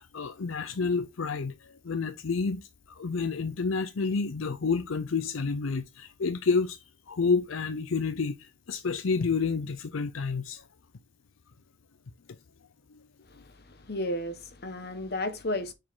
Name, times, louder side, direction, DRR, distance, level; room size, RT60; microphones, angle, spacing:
voice 1, 0.0-10.6 12.9-13.0, left 4 dB, 80° left, 0.6 m, -29 dB
voice 2, 13.3-15.7, left 1 dB, 50° left, 1.2 m, -33 dB
6.4 x 4.8 x 3.7 m
head